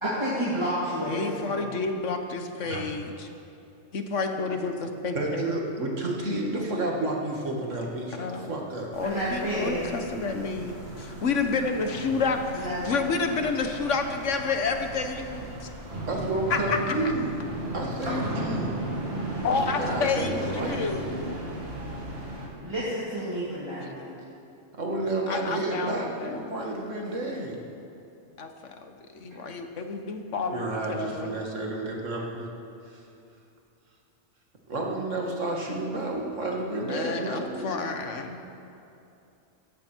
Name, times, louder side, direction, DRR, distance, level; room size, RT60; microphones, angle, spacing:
voice 1, 0.0-1.7 4.3-4.6 9.0-9.9 12.5-13.2 22.6-24.1, equal, 20° right, -10 dB, 2.9 m, -30 dB
voice 2, 1.0-3.3 3.9-5.5 8.2-8.5 9.0-15.7 16.5-17.0 19.4-21.1 23.7-24.0 25.3-26.5 28.4-31.4 36.8-38.4, left 4 dB, 80° left, 5 dB, 1.5 m, -30 dB
voice 3, 5.1-8.9 16.1-17.4 17.7-18.8 19.8-20.9 24.8-27.6 30.5-32.5 32.9-33.0 34.7-37.7, right 2 dB, 85° right, -1 dB, 2.4 m, -30 dB
sound 1, 8.9-22.5, right 1 dB, 50° right, 2.5 m, -35 dB
18.0 x 14.5 x 4.5 m, 2.7 s
omnidirectional pair, 1.2 m